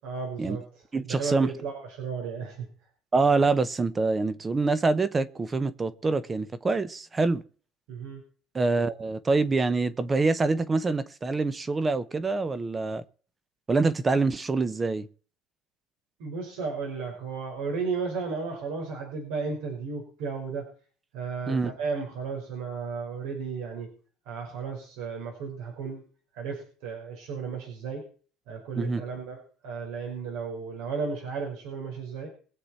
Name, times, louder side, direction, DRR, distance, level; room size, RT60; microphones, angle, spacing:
voice 1, 0.0-0.6 1.1-2.7 7.9-8.2 16.2-20.7 21.1-23.9 24.2-26.0 26.3-28.0 28.5-32.3, right 5 dB, 85° right, 5.0 m, -34 dB
voice 2, 0.9-1.5 3.1-7.4 8.5-13.0 13.7-15.1 21.5-21.7 28.8-29.0, right 3 dB, 15° right, 0.7 m, -25 dB
23.0 x 8.0 x 4.4 m
cardioid pair, 165°, 0 cm